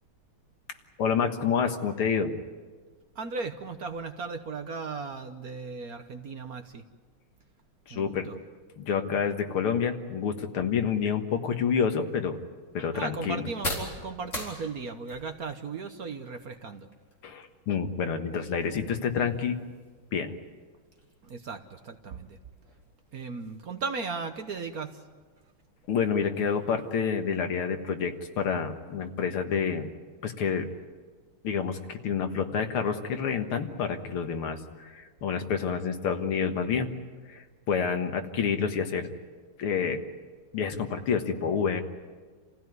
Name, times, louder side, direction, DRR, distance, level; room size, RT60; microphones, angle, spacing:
voice 1, 1.0-2.3 7.9-8.3 8.8-12.4 12.7-13.4 17.2-19.6 20.1-20.3 25.9-29.9 30.2-30.7 31.4-36.9 37.3-39.1 39.6-40.0 40.5-41.8, left 6 dB, 80° left, 6 dB, 2.4 m, -28 dB
voice 2, 3.1-6.8 7.9-8.4 12.9-16.9 21.2-22.4 23.1-25.0, right 4 dB, 50° right, 7 dB, 1.3 m, -36 dB
sound 1, 11.5-29.1, left 1 dB, 35° left, 4.6 m, -45 dB
28.0 x 16.0 x 9.5 m, 1.4 s
omnidirectional pair, 2.3 m